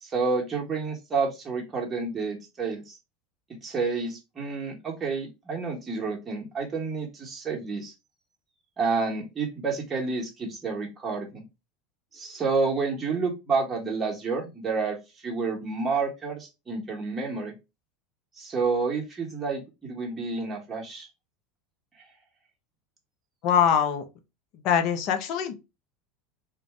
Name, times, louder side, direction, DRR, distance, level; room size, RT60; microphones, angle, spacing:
voice 1, 0.0-3.0 3.6-7.9 8.8-11.4 12.1-17.5 18.4-21.1, right 4 dB, 25° right, 1.2 m, -29 dB
voice 2, 23.4-24.0 24.6-25.5, left 8 dB, 55° left, 0.6 m, -23 dB
2.5 x 2.3 x 3.2 m
hypercardioid pair, 95°, 0 cm